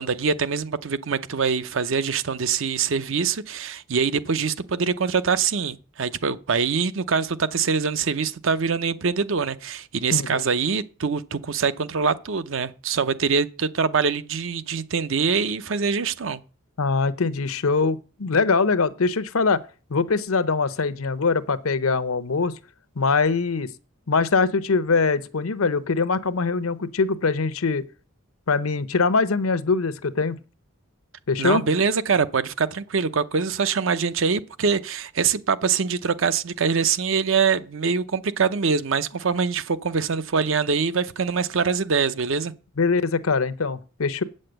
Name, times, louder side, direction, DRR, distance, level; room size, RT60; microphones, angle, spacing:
voice 1, 0.0-16.4 31.4-42.5, right 5 dB, 65° right, 0.6 m, -24 dB
voice 2, 10.1-10.4 16.8-19.6 19.9-22.6 23.0-23.7 24.1-27.8 28.5-30.4 31.3-31.6 42.8-44.2, left 4 dB, 85° left, 0.8 m, -22 dB
8.6 x 6.5 x 7.8 m
head